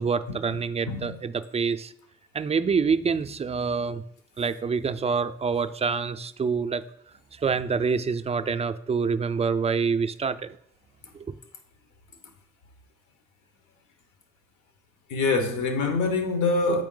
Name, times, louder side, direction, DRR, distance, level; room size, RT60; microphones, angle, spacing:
voice 1, 0.0-1.9 2.3-4.0 4.4-6.8 7.3-10.6, right 5 dB, 20° right, 0.3 m, -26 dB
voice 2, 15.1-16.8, left 3 dB, 80° left, 1.1 m, -25 dB
7.7 x 4.6 x 3.8 m
cardioid pair, 90°, 30 cm